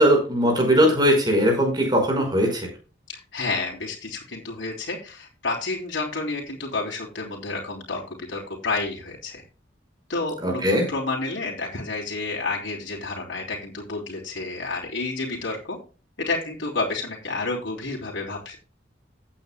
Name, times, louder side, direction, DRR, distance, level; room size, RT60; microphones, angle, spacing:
voice 1, 0.0-2.7 10.4-10.8, equal, 20° right, 2 dB, 5.2 m, -19 dB
voice 2, 3.1-9.4 10.1-15.8 16.2-18.6, left 3 dB, 80° left, -3 dB, 3.4 m, -30 dB
16.0 x 9.0 x 2.2 m, 0.34 s
head